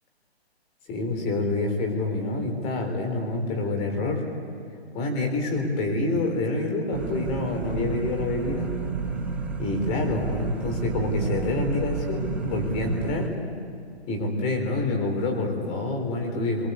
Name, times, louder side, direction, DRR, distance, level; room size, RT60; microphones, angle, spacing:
voice 1, 0.9-4.2 4.9-8.7 9.6-13.3 14.1-16.7, left 2 dB, 20° left, 3 dB, 3.9 m, -27 dB
sound 1, 6.9-13.3, right 5 dB, 5° right, 0.7 m, -31 dB
27.5 x 23.5 x 8.3 m, 2.3 s
hypercardioid pair, 155°, 32 cm